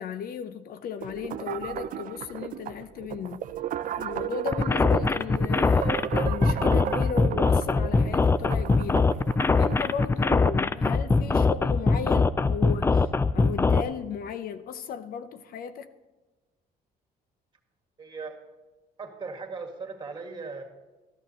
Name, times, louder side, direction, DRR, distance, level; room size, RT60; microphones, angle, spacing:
voice 1, 0.0-3.5 4.0-9.1 9.6-15.9, left 7 dB, 60° left, 0.7 m, -35 dB
sound 1, 1.0-10.6, right 10 dB, 50° right, 0.5 m, -35 dB
sound 2, 4.5-13.8, left 4 dB, 15° left, 0.3 m, -22 dB
voice 2, 18.0-18.4 19.0-20.6, right 4 dB, 30° right, 1.9 m, -38 dB
13.5 x 11.0 x 4.2 m
cardioid pair, 110°, 17 cm